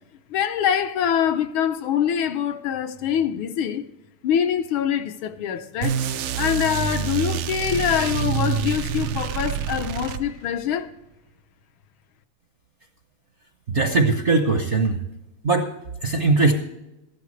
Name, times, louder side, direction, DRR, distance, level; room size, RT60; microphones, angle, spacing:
voice 1, 0.3-3.8 4.2-6.0 6.4-10.9, left 9 dB, 75° left, 1.5 m, -24 dB
sound 1, 5.8-10.6, right 7 dB, 90° right, 1.5 m, -27 dB
voice 2, 13.7-15.0 15.4-15.7 16.0-16.6, right 3 dB, 55° right, 0.8 m, -20 dB
14.0 x 11.5 x 3.2 m
omnidirectional pair, 2.3 m